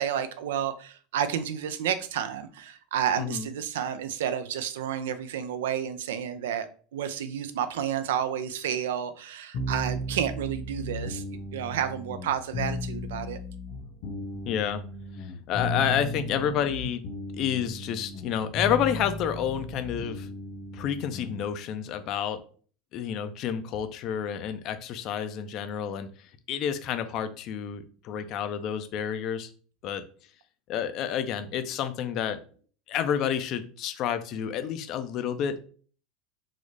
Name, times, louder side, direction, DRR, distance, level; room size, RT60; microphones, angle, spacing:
voice 1, 0.0-6.7 6.9-11.2 11.5-13.4, right 9 dB, 90° right, 11 dB, 0.4 m, -30 dB
sound 1, 9.5-21.4, left 1 dB, 70° left, 1.4 m, -35 dB
voice 2, 14.5-14.8 15.2-17.0 17.3-20.3 20.7-22.4 22.9-29.5 29.8-30.0 30.7-32.4 32.9-35.6, left 9 dB, 50° left, 10 dB, 0.4 m, -29 dB
3.8 x 2.0 x 3.2 m, 0.43 s
supercardioid pair, 115°, 0 cm